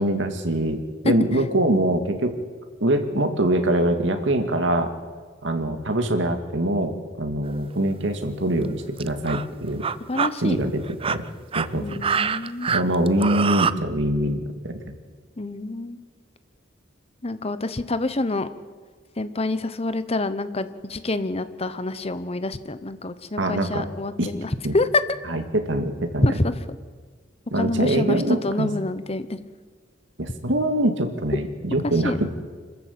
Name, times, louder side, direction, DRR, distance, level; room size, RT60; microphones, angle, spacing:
voice 1, 0.0-2.3 2.8-4.9 5.4-9.8 10.4-11.2 11.5-12.0 12.7-14.9 23.4-23.9 24.2-24.3 24.6-24.8 25.3-26.3 27.5-28.7 30.2-32.4, right 1 dB, 75° right, 6 dB, 2.2 m, -23 dB
sound 1, 7.5-7.7 8.6-8.7 9.0-9.5 9.8-10.3 10.9-13.7, right 6 dB, 30° right, 0.5 m, -25 dB
voice 2, 10.1-10.6 11.8-12.7 15.4-16.0 17.2-18.5 19.2-24.9 26.2-26.8 27.5-29.4 32.0-32.2, left 2 dB, 35° left, 12 dB, 1.0 m, -27 dB
26.0 x 13.5 x 8.5 m, 1.5 s
head